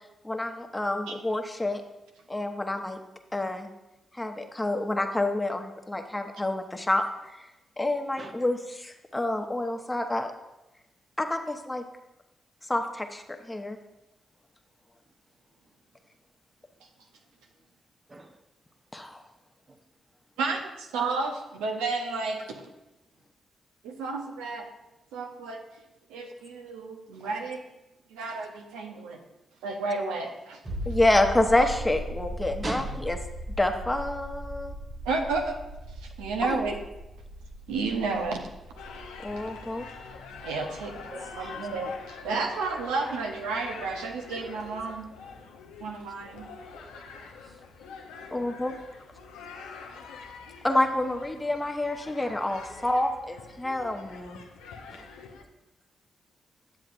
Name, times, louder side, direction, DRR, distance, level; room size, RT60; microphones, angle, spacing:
voice 1, 0.2-1.8 2.3-3.0 3.3-3.7 4.1-7.5 7.8-10.3 11.2-11.8 12.7-13.8 18.9-19.2 30.9-33.2 33.6-34.7 36.4-36.6 39.2-39.9 48.3-48.7 50.6-54.4, left 1 dB, 15° left, 0.9 m, -28 dB
voice 2, 18.1-18.4 19.7-19.8 32.6-33.1 41.1-41.7 42.4-42.6 42.9-43.2 44.7-44.8 46.7-47.5 52.2-53.1 54.9-55.1, right 2 dB, 35° right, 1.0 m, -42 dB
voice 3, 20.9-22.6 23.8-24.7 25.1-25.6 26.1-27.6 28.1-29.2 29.6-30.6 35.0-35.6 36.0-36.8 37.7-38.5 39.3-39.4 40.4-41.0 41.4-45.1 45.8-46.5, right 3 dB, 85° right, 0.7 m, -31 dB
sound 1, 30.6-42.0 42.3-42.4, right 1 dB, 60° right, 2.5 m, -39 dB
sound 2, 38.8-55.4, left 5 dB, 85° left, 0.7 m, -45 dB
9.5 x 7.7 x 2.5 m
hypercardioid pair, 40°, 0 cm